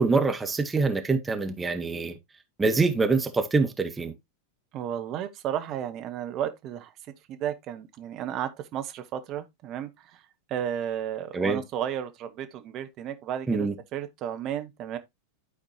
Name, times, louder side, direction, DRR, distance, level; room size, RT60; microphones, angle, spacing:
voice 1, 0.0-2.1 2.6-4.1 11.3-11.6 13.5-13.7, right 3 dB, 15° right, 1.1 m, -25 dB
voice 2, 4.7-6.9 7.3-10.2 10.5-15.0, right 10 dB, 35° right, 1.0 m, -33 dB
12.0 x 4.3 x 2.8 m
figure-of-eight pair, 90°, 0 cm